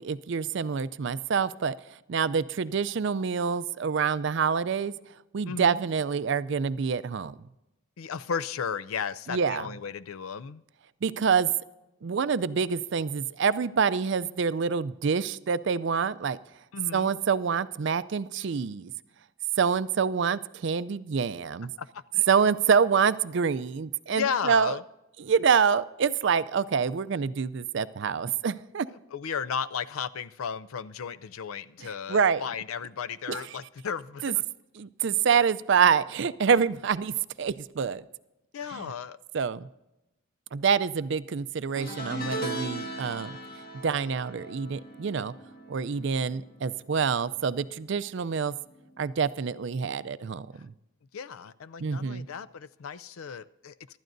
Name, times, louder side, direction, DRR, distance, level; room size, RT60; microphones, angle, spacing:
voice 1, 0.0-1.8 2.1-4.9 5.3-7.3 9.3-9.7 11.0-11.5 12.0-16.4 16.9-18.9 19.6-21.7 22.3-24.8 25.2-28.9 31.8-32.4 33.3-33.4 34.2-34.3 34.8-38.0 38.7-38.9 39.3-39.7 40.5-43.4 43.8-45.3 45.7-48.6 49.0-50.7 51.8-52.3, right 6 dB, 55° right, 15 dB, 0.4 m, -26 dB
voice 2, 5.5-5.8 8.0-10.6 16.7-17.1 21.8-22.3 24.1-24.8 28.9-34.4 38.5-39.2 51.1-54.0, left 6 dB, 80° left, 16 dB, 0.5 m, -35 dB
sound 1, 41.8-47.2 47.4-47.8 49.0-49.1, right 1 dB, 45° left, 1.7 m, -38 dB
24.5 x 12.0 x 2.6 m, 0.92 s
head